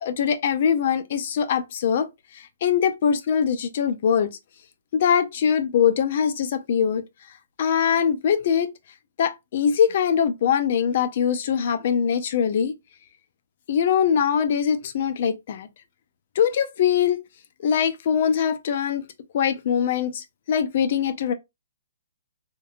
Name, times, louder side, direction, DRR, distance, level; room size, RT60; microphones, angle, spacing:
voice 1, 0.0-2.1 2.3-4.3 4.9-7.0 7.6-8.7 9.2-12.7 13.7-15.7 16.4-17.2 17.6-19.0 19.3-21.3, left 7 dB, 50° left, 0.5 m, -22 dB
2.7 x 2.2 x 2.4 m
hypercardioid pair, 145°, 0 cm